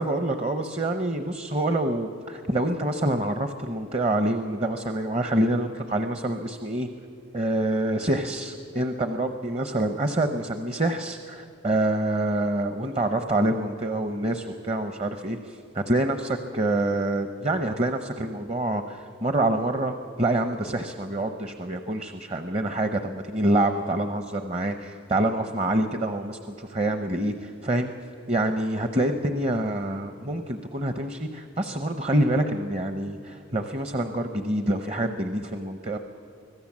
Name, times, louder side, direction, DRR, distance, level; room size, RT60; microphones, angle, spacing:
voice 1, 0.0-6.9 7.3-27.9 28.3-36.0, right 1 dB, 30° right, 7 dB, 0.8 m, -26 dB
25.0 x 17.0 x 7.4 m, 2.7 s
head